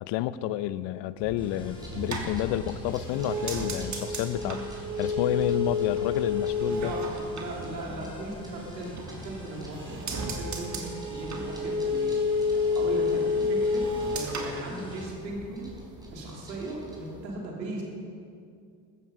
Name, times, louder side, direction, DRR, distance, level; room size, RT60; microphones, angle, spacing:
voice 1, 0.0-4.7 5.0-6.9, left 13 dB, 60° left, 16 dB, 0.8 m, -30 dB
sound 1, 1.2-17.3, equal, 10° right, 4.5 m, -46 dB
sound 2, 1.4-15.1, left 1 dB, 10° left, 4.9 m, -47 dB
sound 3, 1.6-8.4 8.8-9.5 9.8-15.5 15.7-16.2, left 3 dB, 35° right, 2.8 m, -30 dB
voice 2, 6.7-12.4 12.7-13.8 14.1-15.7 16.1-17.9, right 2 dB, 90° right, -2 dB, 3.3 m, -38 dB
14.5 x 14.0 x 5.4 m, 2.4 s
hypercardioid pair, 65°, 49 cm